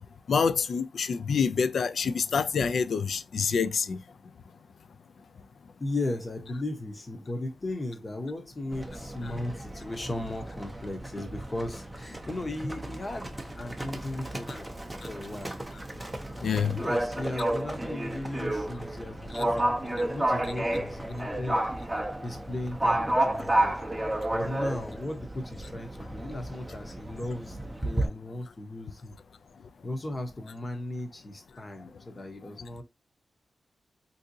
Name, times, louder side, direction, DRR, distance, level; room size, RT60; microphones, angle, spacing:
voice 1, 0.3-4.0 14.5-14.6 16.4-16.8 19.3-19.4, left 6 dB, 70° left, 0.3 m, -27 dB
voice 2, 5.8-13.3 13.6-14.7 15.1-15.5 16.7-21.6 22.2-23.8 24.3-29.1 29.8-32.8, left 1 dB, 25° left, 0.8 m, -36 dB
Livestock farm animals working animals, 8.7-28.1, right 1 dB, 10° right, 0.5 m, -32 dB
3.6 x 2.7 x 2.6 m
wide cardioid pair, 155°, 0 cm